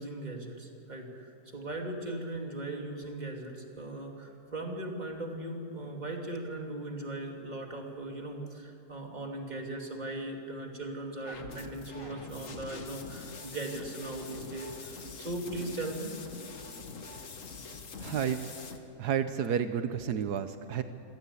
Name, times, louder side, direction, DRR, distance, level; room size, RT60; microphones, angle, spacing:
voice 1, 0.0-16.2, right 2 dB, 25° right, 1 dB, 2.9 m, -38 dB
sound 1, 11.2-18.8, left 4 dB, 55° left, 1.7 m, -44 dB
voice 2, 18.0-18.5 19.0-20.8, right 8 dB, 85° right, 10 dB, 1.4 m, -31 dB
26.0 x 17.5 x 8.5 m, 2.8 s
omnidirectional pair, 1.7 m